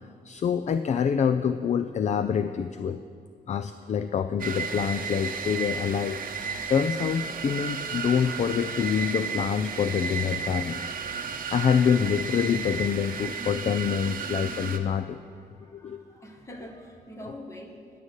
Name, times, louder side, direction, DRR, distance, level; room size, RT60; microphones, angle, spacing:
voice 1, 0.2-3.0 3.5-6.2 6.7-10.8 11.5-15.2 15.7-16.0, left 7 dB, 40° left, 11 dB, 0.4 m, -26 dB
sound 1, 4.4-14.8, right 6 dB, 55° right, 0.8 m, -33 dB
voice 2, 14.6-17.9, left 1 dB, 15° left, 2 dB, 1.4 m, -45 dB
11.0 x 6.5 x 8.1 m, 2.2 s
wide cardioid pair, 120°, 18 cm